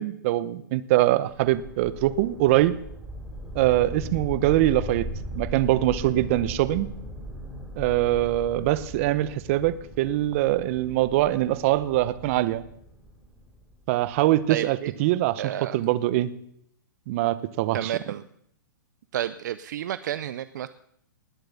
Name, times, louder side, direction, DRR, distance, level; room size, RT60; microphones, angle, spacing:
voice 1, 0.0-2.7 3.5-5.1 5.3-6.9 7.8-12.6 13.9-16.3 17.1-17.9, right 15 dB, 40° right, 16 dB, 0.9 m, -23 dB
sound 1, 1.3-14.4, equal, 5° right, 3.6 m, -39 dB
voice 2, 14.5-14.9 15.4-15.8 17.7-18.2 19.1-20.7, right 11 dB, 60° right, 14 dB, 0.6 m, -30 dB
19.5 x 7.8 x 7.1 m, 0.70 s
hypercardioid pair, 145°, 11 cm